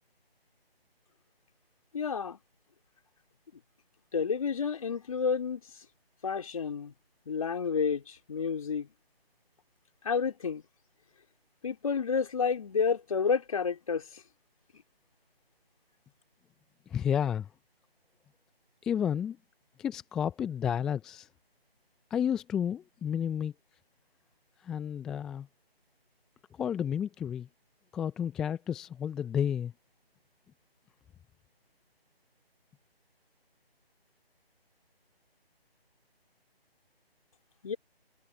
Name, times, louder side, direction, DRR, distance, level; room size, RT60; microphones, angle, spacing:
voice 1, 1.9-2.4 4.1-5.6 6.2-6.9 7.3-8.9 10.0-10.6 11.6-14.2 37.6-37.8, left 6 dB, 35° left, 4.6 m, -30 dB
voice 2, 16.9-17.5 18.8-19.4 19.8-21.3 22.1-23.5 24.6-25.5 26.5-27.5 27.9-29.7, left 8 dB, ahead, 0.9 m, -31 dB
figure-of-eight pair, 155°, 31 cm